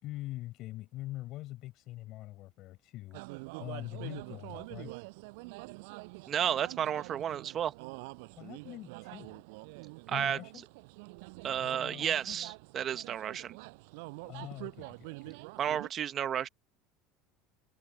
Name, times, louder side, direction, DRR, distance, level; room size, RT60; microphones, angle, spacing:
voice 1, 0.0-3.2 3.6-5.0 8.4-9.4 10.1-10.6 11.6-12.4 14.2-15.3, left 16 dB, 60° left, 5.0 m, -43 dB
sound 1, 3.1-15.9, right 29 dB, 80° right, 8.0 m, -46 dB
voice 2, 6.3-7.7 10.1-10.4 11.4-13.6 15.6-16.5, right 9 dB, 40° right, 1.3 m, -32 dB
open air
supercardioid pair, 115°, 0 cm